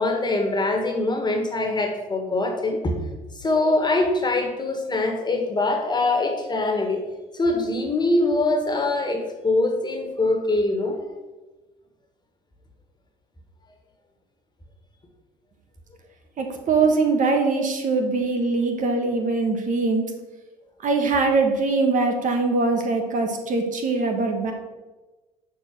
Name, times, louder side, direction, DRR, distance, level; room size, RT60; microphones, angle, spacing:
voice 1, 0.0-3.0 3.4-7.0 7.3-11.0, left 2 dB, 25° left, 3 dB, 1.8 m, -23 dB
voice 2, 16.4-20.0 20.8-24.5, right 3 dB, 50° right, 3 dB, 1.3 m, -22 dB
6.6 x 4.7 x 6.1 m, 1.2 s
hypercardioid pair, 55°, 17 cm